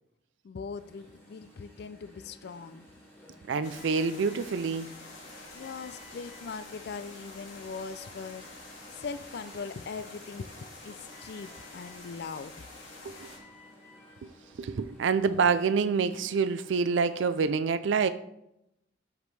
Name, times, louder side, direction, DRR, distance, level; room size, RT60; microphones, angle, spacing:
voice 1, 0.4-2.9 5.5-8.5 8.9-12.7, left 5 dB, 55° left, 0.4 m, -40 dB
Alarm, 0.8-17.5, left 1 dB, 10° left, 2.8 m, -55 dB
voice 2, 3.5-4.9 13.0-13.3 14.6-18.1, right 5 dB, 70° right, 0.4 m, -27 dB
sound 1, 3.6-13.4, left 2 dB, 90° left, 2.3 m, -48 dB
13.0 x 5.1 x 3.3 m
head